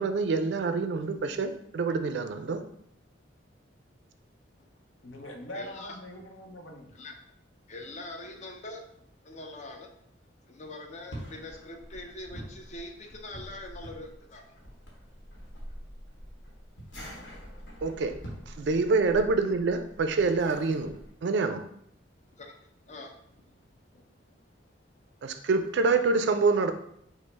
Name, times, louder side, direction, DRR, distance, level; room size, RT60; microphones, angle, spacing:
voice 1, 0.0-2.6 17.8-18.2 18.5-20.9 21.2-21.7 25.2-26.7, right 4 dB, 60° right, 8 dB, 0.3 m, -26 dB
voice 2, 5.0-6.9 23.9-24.0, left 1 dB, 80° left, 2 dB, 0.7 m, -42 dB
voice 3, 5.5-6.0 6.9-7.2 7.7-9.9 10.5-14.6 17.2-17.3 22.2-22.5 22.9-23.6, left 2 dB, 35° left, 3 dB, 0.5 m, -43 dB
sound 1, 10.9-21.1, equal, 65° left, 1.1 m, -46 dB
5.0 x 2.0 x 3.3 m, 0.72 s
head